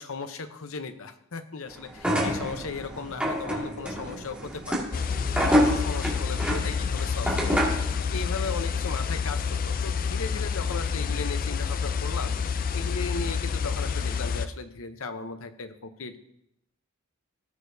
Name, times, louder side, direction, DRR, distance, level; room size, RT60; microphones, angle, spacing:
voice 1, 0.0-5.0 5.4-7.7 8.1-12.3 12.7-16.2, left 4 dB, 70° left, 9 dB, 0.8 m, -37 dB
sound 1, 1.9-7.9, equal, 5° right, 2.1 m, -27 dB
sound 2, 4.9-14.5, left 6 dB, 40° left, 0.4 m, -28 dB
17.5 x 6.6 x 2.7 m, 0.79 s
head